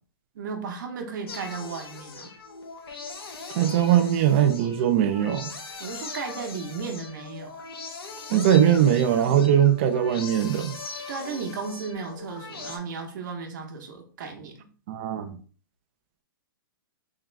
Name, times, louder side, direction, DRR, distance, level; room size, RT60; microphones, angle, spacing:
voice 1, 0.3-2.3 5.8-7.6 11.1-14.5, right 5 dB, 55° right, 1.0 m, -35 dB
sound 1, 1.3-12.8, left 4 dB, 85° left, 0.9 m, -40 dB
voice 2, 3.5-5.5 8.3-10.8 14.9-15.4, right 10 dB, 30° right, 0.4 m, -21 dB
3.7 x 2.9 x 3.3 m
hypercardioid pair, 160°, 12 cm